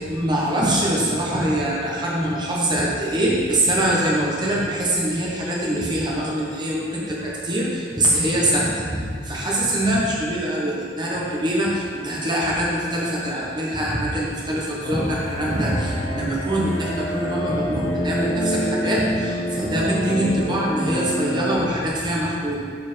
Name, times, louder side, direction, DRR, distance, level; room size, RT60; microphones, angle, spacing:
voice 1, 0.1-22.6, right 1 dB, 25° right, -4 dB, 1.3 m, -23 dB
sound 1, 14.8-21.7, equal, 45° left, 0.8 m, -27 dB
8.1 x 4.5 x 4.4 m, 2.2 s
head